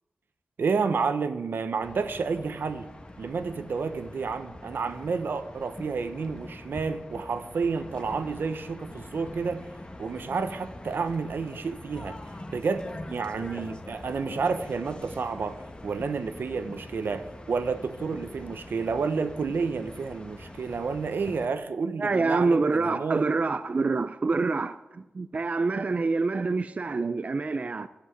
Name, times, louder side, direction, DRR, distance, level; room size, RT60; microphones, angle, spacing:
voice 1, 0.6-2.9 3.2-9.6 10.0-12.2 12.5-23.2, right 5 dB, 85° right, 1.0 m, -30 dB
sound 1, 1.8-21.5, left 1 dB, 30° left, 1.2 m, -44 dB
voice 2, 22.0-27.9, right 3 dB, 40° right, 0.4 m, -26 dB
11.5 x 8.1 x 7.9 m
wide cardioid pair, 105°, 3 cm